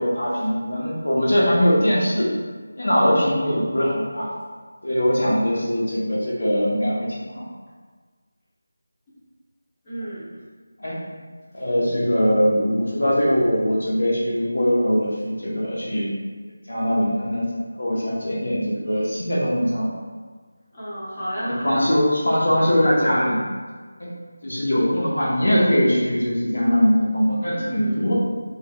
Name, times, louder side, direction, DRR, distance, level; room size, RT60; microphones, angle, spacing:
voice 1, 0.0-2.3 2.8-4.3 4.8-7.4 10.8-11.0 11.5-16.1 16.7-17.5 17.8-20.0 21.4-23.4 24.0-24.1 24.4-28.1, equal, 80° left, -5 dB, 1.1 m, -21 dB
voice 2, 9.8-10.4 20.7-21.8 27.5-28.1, equal, 15° left, -12 dB, 0.7 m, -32 dB
3.2 x 3.2 x 2.4 m, 1.5 s
figure-of-eight pair, 175°, 0 cm